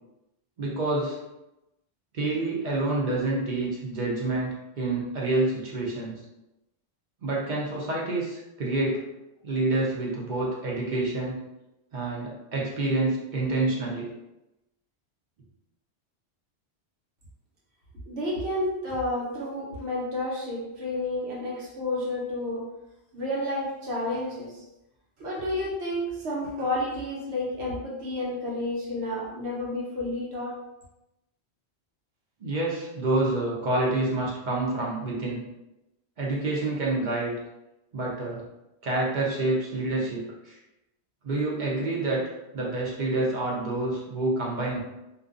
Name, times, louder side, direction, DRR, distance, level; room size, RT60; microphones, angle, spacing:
voice 1, 0.6-1.2 2.1-4.5 4.8-6.2 7.2-9.0 9.4-11.4 11.9-14.1 32.4-35.4 36.2-37.3 37.9-38.4 38.8-40.6 41.2-42.2 42.5-44.8, right 2 dB, 50° right, -4 dB, 0.7 m, -27 dB
voice 2, 18.1-22.6 23.1-24.6 25.2-30.5, left 1 dB, 75° right, -4 dB, 1.0 m, -30 dB
2.5 x 2.2 x 2.4 m, 0.95 s
omnidirectional pair, 1.1 m